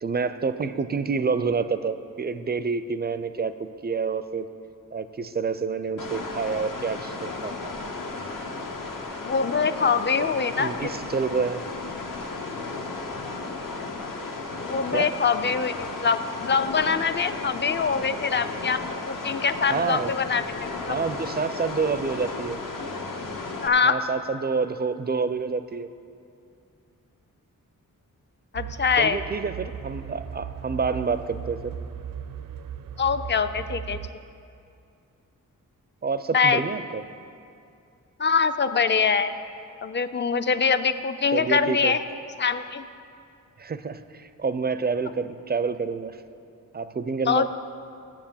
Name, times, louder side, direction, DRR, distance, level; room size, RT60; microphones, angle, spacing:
voice 1, 0.0-4.5 4.9-7.8 10.1-10.3 10.6-11.6 14.9-15.1 19.7-20.1 20.9-22.6 23.8-25.9 29.0-31.8 36.0-37.0 41.3-41.9 43.6-46.2 46.7-47.5, right 5 dB, 30° right, 12 dB, 0.4 m, -28 dB
sound 1, 6.0-23.7, left 3 dB, 70° left, 1.0 m, -34 dB
voice 2, 9.2-10.9 14.6-21.0 23.6-24.0 28.5-29.2 33.0-34.0 36.3-36.6 38.2-39.3 39.8-42.0 42.4-42.8 47.3-47.5, left 5 dB, 35° left, 11 dB, 0.4 m, -24 dB
sound 2, 28.5-34.1, right 8 dB, 80° right, 0.6 m, -37 dB
7.2 x 7.2 x 7.2 m, 2.5 s
cardioid pair, 75°, 34 cm